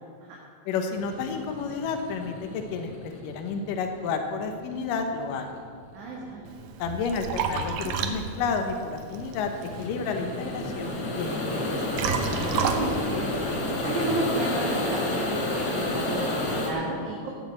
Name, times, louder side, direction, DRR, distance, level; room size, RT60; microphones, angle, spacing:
voice 1, 0.7-5.6 6.8-11.8, left 5 dB, 80° left, 5 dB, 2.7 m, -31 dB
sound 1, 1.0-16.7, left 1 dB, 55° left, 3.3 m, -31 dB
voice 2, 5.9-6.4 12.3-13.4 13.8-17.3, right 2 dB, 65° right, -4 dB, 3.1 m, -32 dB
Liquid, 6.5-14.2, right 6 dB, 85° right, 2.6 m, -33 dB
16.5 x 7.3 x 7.5 m, 2.1 s
omnidirectional pair, 3.9 m